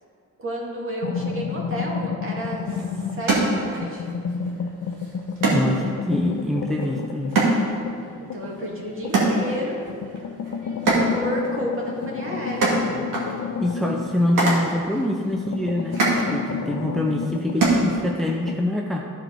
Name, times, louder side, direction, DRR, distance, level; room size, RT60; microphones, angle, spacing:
voice 1, 0.4-2.8 3.1-4.1 8.2-9.8 11.1-12.8, equal, 40° right, -3 dB, 2.1 m, -31 dB
sound 1, 1.0-3.5 3.8-9.4 9.9-14.9 15.3-18.6, left 6 dB, 55° left, 0.5 m, -31 dB
sound 2, 2.4-18.4, right 2 dB, 90° right, 2.2 m, -27 dB
voice 2, 5.5-7.4 13.6-16.0 16.3-19.1, left 1 dB, ahead, 0 dB, 0.6 m, -25 dB
13.5 x 4.7 x 4.0 m, 2.1 s
cardioid pair, 105°, 32 cm